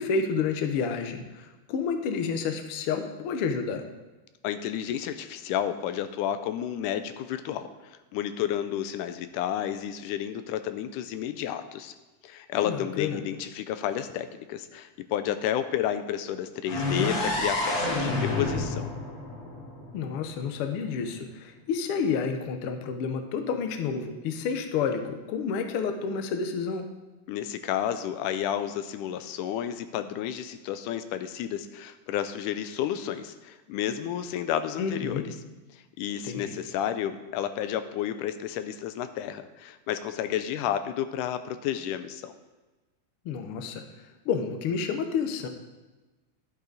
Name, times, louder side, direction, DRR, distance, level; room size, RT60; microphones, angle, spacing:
voice 1, 0.0-3.9 12.6-13.2 19.9-26.9 34.8-35.3 36.2-36.5 43.2-43.8 44.2-45.5, left 5 dB, 70° left, 6 dB, 1.4 m, -30 dB
voice 2, 4.4-11.9 12.2-18.9 27.3-35.3 35.7-42.4, left 10 dB, 85° left, 11 dB, 2.1 m, -31 dB
sound 1, 16.7-20.5, left 2 dB, 40° left, 1.5 m, -29 dB
11.0 x 8.6 x 3.9 m, 1.2 s
omnidirectional pair, 3.6 m